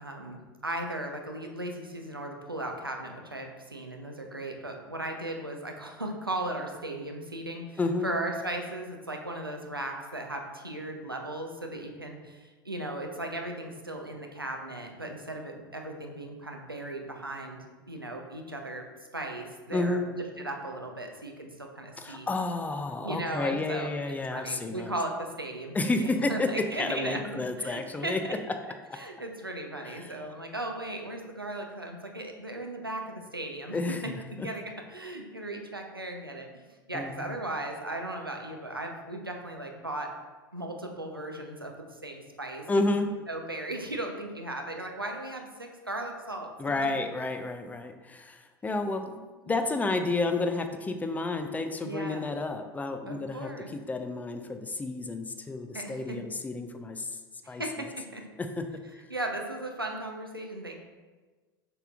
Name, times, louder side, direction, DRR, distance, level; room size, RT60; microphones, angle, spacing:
voice 1, 0.0-18.9 19.1-22.3 23.0-28.3 28.9-33.8 34.0-34.6 34.9-36.5 36.9-40.1 40.5-42.7 43.3-46.5 51.8-52.3 53.1-53.7 55.7-56.2 57.4-58.2 59.1-60.7, right 1 dB, 90° right, 2 dB, 0.7 m, -37 dB
voice 2, 7.8-8.1 19.7-20.1 22.0-24.9 25.7-28.2 28.9-29.0 29.8-30.2 33.7-34.5 36.9-37.4 42.7-43.1 46.6-49.2 49.5-57.2 57.5-57.6 58.4-58.7, left 2 dB, 15° left, 7 dB, 0.5 m, -31 dB
6.8 x 5.7 x 2.4 m, 1.3 s
figure-of-eight pair, 75°, 12 cm